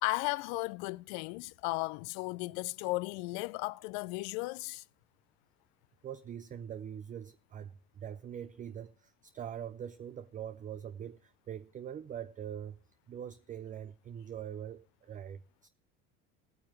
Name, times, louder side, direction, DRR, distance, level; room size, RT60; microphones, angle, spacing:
voice 1, 0.0-4.8, left 23 dB, 75° left, 0.5 m, -35 dB
voice 2, 6.0-12.8 13.1-15.7, right 9 dB, 25° right, 0.4 m, -43 dB
17.0 x 9.0 x 3.0 m
supercardioid pair, 95°, 35 cm